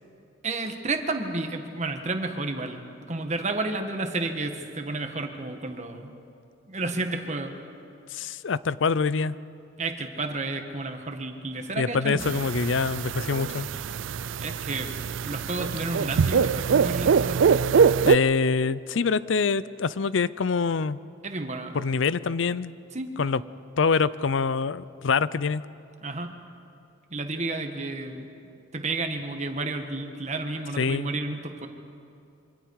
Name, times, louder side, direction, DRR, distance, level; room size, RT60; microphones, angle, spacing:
voice 1, 0.4-2.8 3.1-6.1 6.7-7.5 9.8-12.4 14.4-14.9 15.2-17.4 21.2-21.7 22.9-23.1 26.0-26.4 27.1-28.3 28.7-31.7, right 2 dB, 35° right, 5 dB, 1.6 m, -31 dB
voice 2, 8.1-9.4 11.8-13.7 18.0-21.0 21.7-22.7 23.2-23.4 23.8-25.6 30.8-31.1, left 5 dB, 75° left, 17 dB, 0.5 m, -25 dB
sound 1, 12.2-18.2, right 6 dB, 80° right, 0.4 m, -23 dB
26.5 x 25.0 x 4.8 m, 2.5 s
head